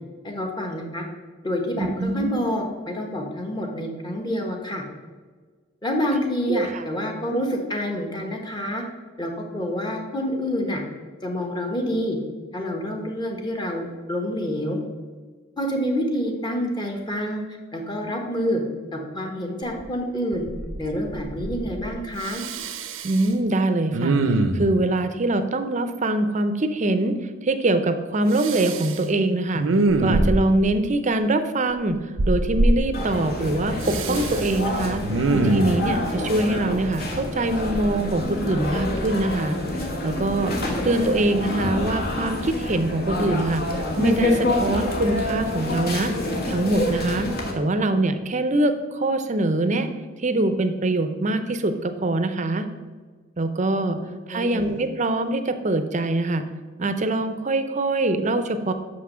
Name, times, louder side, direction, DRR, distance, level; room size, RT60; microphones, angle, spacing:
voice 1, 0.2-1.0 1.4-4.8 5.8-8.8 9.2-10.8 11.2-12.2 12.5-14.8 15.6-17.4 17.7-18.6 18.9-20.4 20.8-22.4 40.6-40.7 54.0-54.7, equal, 20° left, 2 dB, 1.2 m, -27 dB
voice 2, 1.8-2.4 6.5-6.8 23.0-29.7 30.0-32.0 32.3-35.0 35.3-40.6 40.8-43.6 44.0-46.1 46.5-47.3 47.6-49.9 50.2-52.7 53.4-54.0 54.3-56.4 56.8-58.7, right 2 dB, 40° right, 9 dB, 0.6 m, -23 dB
Respiratory sounds, 19.8-19.9 20.3-20.9 21.1-21.9 22.2-23.3 23.9-24.7 28.3-29.0 29.5-30.6 32.2-32.8 33.8-34.5 35.0-35.8 37.6-38.5 39.0-39.1, right 2 dB, 80° right, 0.7 m, -23 dB
sound 1, 32.9-47.5, left 1 dB, 50° left, 1.4 m, -27 dB
6.3 x 5.9 x 6.2 m, 1.5 s
head